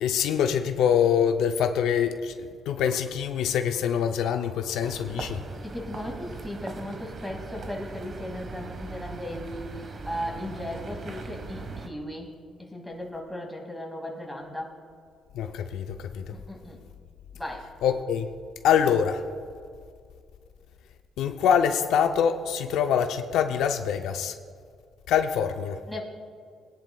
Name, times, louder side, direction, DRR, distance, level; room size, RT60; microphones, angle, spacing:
voice 1, 0.0-5.4 15.3-16.3 17.8-18.3 18.6-19.3 21.2-24.4 25.1-25.8, left 8 dB, 85° left, 0.6 m, -25 dB
sound 1, 4.8-11.9, right 3 dB, 50° right, 1.3 m, -39 dB
voice 2, 5.6-12.3 12.6-14.7 16.3-16.8 17.3-17.7 25.9-26.0, left 1 dB, 5° left, 2.3 m, -36 dB
21.5 x 10.5 x 2.3 m
cardioid pair, 90°, 0 cm